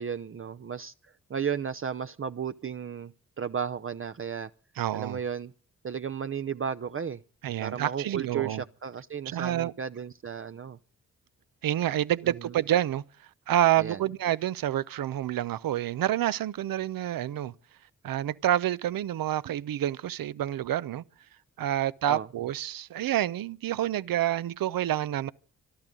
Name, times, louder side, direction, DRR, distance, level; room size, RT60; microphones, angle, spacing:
voice 1, 0.0-4.5 4.9-5.5 5.8-7.2 7.6-10.8 12.2-12.5 13.8-14.0 22.1-22.3, right 7 dB, 35° right, 0.7 m, -34 dB
voice 2, 4.8-5.2 7.4-8.6 9.3-9.7 11.6-13.0 13.5-17.5 18.0-21.0 21.6-25.3, right 12 dB, 70° right, 0.7 m, -28 dB
26.0 x 12.0 x 3.8 m
supercardioid pair, 45°, 35 cm